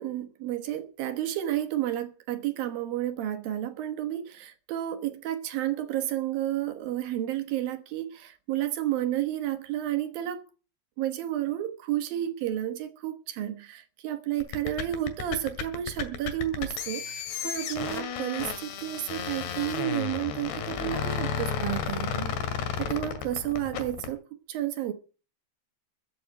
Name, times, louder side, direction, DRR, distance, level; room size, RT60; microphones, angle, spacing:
voice 1, 0.0-10.4 11.0-22.3 22.8-24.9, right 12 dB, 65° right, 2.7 m, -31 dB
sound 1, 14.4-24.1, left 7 dB, 75° left, 4.0 m, -33 dB
14.5 x 7.8 x 8.5 m
omnidirectional pair, 4.9 m